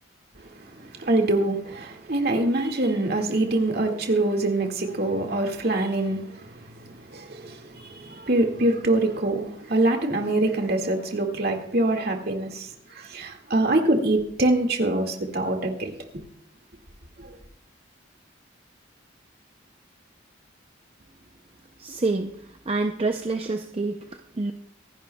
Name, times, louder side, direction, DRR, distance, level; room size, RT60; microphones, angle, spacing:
voice 1, 0.9-16.2 17.2-17.4, right 2 dB, 50° right, 2 dB, 2.0 m, -25 dB
voice 2, 21.8-24.5, right 3 dB, 30° right, 5 dB, 0.5 m, -28 dB
25.0 x 11.5 x 2.3 m, 0.63 s
head